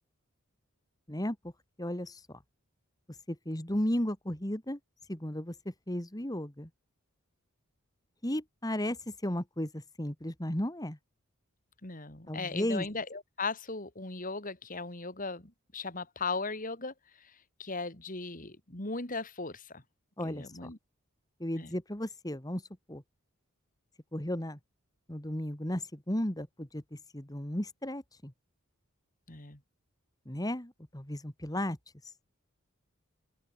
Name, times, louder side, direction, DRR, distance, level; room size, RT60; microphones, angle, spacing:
voice 1, 1.8-2.2 3.3-4.8 5.1-6.7 8.2-9.0 9.2-11.0 12.3-12.9 20.2-20.7 21.4-22.6 22.9-23.0 24.1-24.6 25.1-26.8 27.1-28.3 30.3-31.8, left 1 dB, 15° left, 2.1 m, -34 dB
voice 2, 11.8-16.9 17.6-19.8 20.2-20.8 21.5-21.8 29.3-29.6, left 3 dB, 40° left, 3.0 m, -37 dB
open air
head